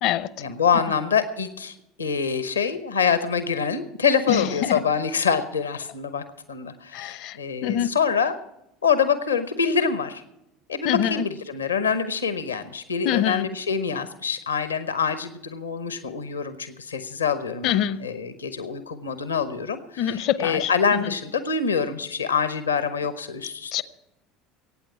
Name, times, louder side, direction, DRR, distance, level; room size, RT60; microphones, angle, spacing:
voice 1, 0.4-8.3 8.8-10.2 10.7-23.7, left 6 dB, 80° left, 0.9 m, -25 dB
voice 2, 4.3-4.8 6.9-7.4 7.6-7.9 10.8-11.2 13.0-13.5 17.6-18.0 20.0-20.7 21.0-21.1 23.7-23.8, left 11 dB, 50° left, 0.7 m, -24 dB
23.0 x 9.2 x 4.9 m
figure-of-eight pair, 70°, 0 cm